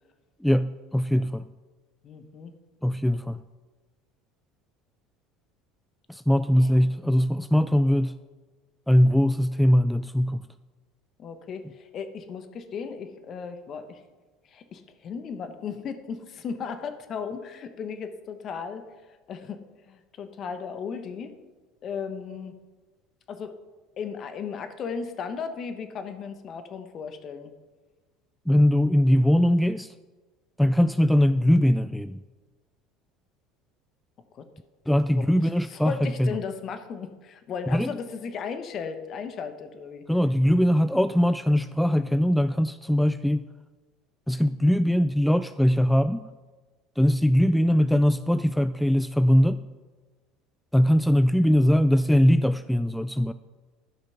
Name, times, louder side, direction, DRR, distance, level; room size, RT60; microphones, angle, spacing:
voice 1, 0.4-1.5 2.8-3.4 6.1-8.2 8.9-10.4 28.5-29.9 30.6-32.2 34.9-36.3 37.7-37.9 40.1-43.4 44.3-46.3 47.0-49.6 50.7-53.3, equal, 5° left, 13 dB, 0.3 m, -21 dB
voice 2, 2.0-2.5 6.6-6.9 11.2-14.0 14.5-18.8 19.3-21.3 21.8-22.6 23.3-23.6 24.0-27.5 34.3-34.5 35.1-40.1, left 6 dB, 45° left, 9 dB, 1.2 m, -36 dB
11.5 x 5.8 x 5.8 m, 1.3 s
hypercardioid pair, 80°, 0 cm